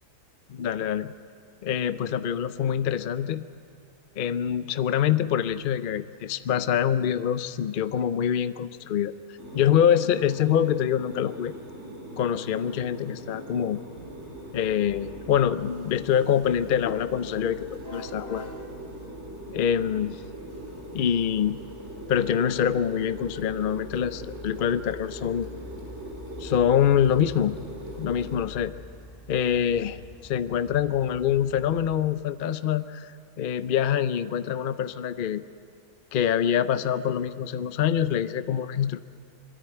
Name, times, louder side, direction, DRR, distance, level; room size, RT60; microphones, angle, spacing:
voice 1, 0.5-1.1 1.6-3.4 4.2-9.1 9.5-11.6 12.2-13.8 14.5-18.5 19.5-20.2 20.9-21.6 22.1-25.5 26.4-27.6 28.0-28.7 29.3-33.1 33.4-35.4 36.1-39.0, left 9 dB, 85° left, 13 dB, 0.4 m, -25 dB
sound 1, 9.4-28.4, right 1 dB, 40° right, 3.2 m, -41 dB
sound 2, 13.9-32.0, left 1 dB, 15° left, 1.7 m, -46 dB
22.5 x 13.5 x 9.4 m, 2.3 s
omnidirectional pair, 1.7 m